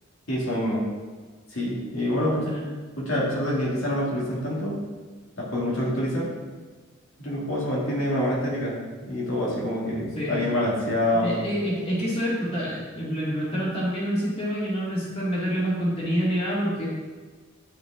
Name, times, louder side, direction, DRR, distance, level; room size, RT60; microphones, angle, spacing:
voice 1, 0.3-0.8 1.5-2.4 3.0-4.7 5.4-6.3 7.2-11.4, left 1 dB, 70° left, -6 dB, 2.2 m, -26 dB
voice 2, 10.1-10.5 11.2-16.9, equal, 30° left, -7 dB, 2.1 m, -27 dB
10.0 x 5.8 x 3.7 m, 1.4 s
head